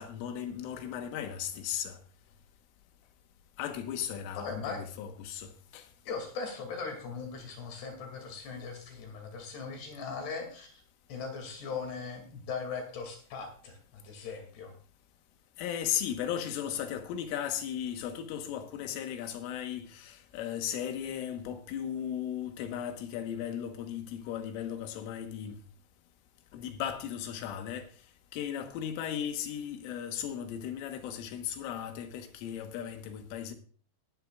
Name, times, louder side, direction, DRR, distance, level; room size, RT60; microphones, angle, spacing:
voice 1, 0.0-2.0 3.6-5.9 15.6-25.6 26.5-27.9 28.3-33.5, left 9 dB, 85° left, 3.8 m, -36 dB
voice 2, 4.3-4.8 6.1-10.8 11.1-14.7, left 5 dB, 60° left, 4.4 m, -39 dB
18.5 x 11.5 x 2.4 m
omnidirectional pair, 5.6 m